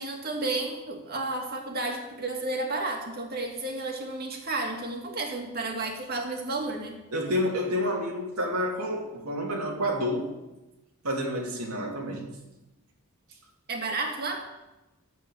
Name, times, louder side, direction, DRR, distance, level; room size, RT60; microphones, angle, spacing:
voice 1, 0.0-7.0 13.7-14.5, right 2 dB, 45° right, 2 dB, 2.1 m, -32 dB
voice 2, 7.1-10.3 11.0-12.3, equal, 90° right, 0 dB, 2.9 m, -29 dB
11.0 x 8.6 x 7.1 m, 1.0 s
head